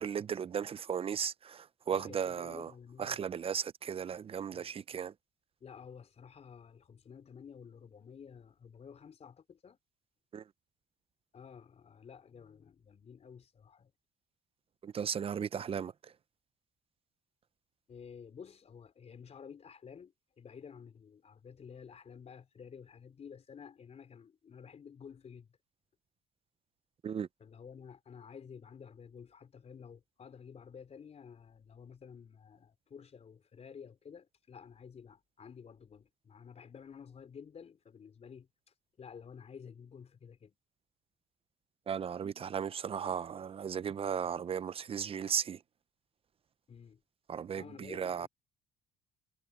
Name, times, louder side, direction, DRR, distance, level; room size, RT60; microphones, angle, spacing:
voice 1, 0.0-2.7 3.0-5.1 10.3-10.4 14.8-16.1 27.0-27.3 41.9-45.6 47.3-48.3, right 7 dB, 35° right, 0.6 m, -36 dB
voice 2, 1.9-3.2 4.5-4.7 5.6-9.8 11.3-13.9 17.9-25.5 27.4-38.5 39.0-40.6 46.7-47.0 47.6-48.3, left 7 dB, 40° left, 3.8 m, -52 dB
cardioid pair, 110°, 17 cm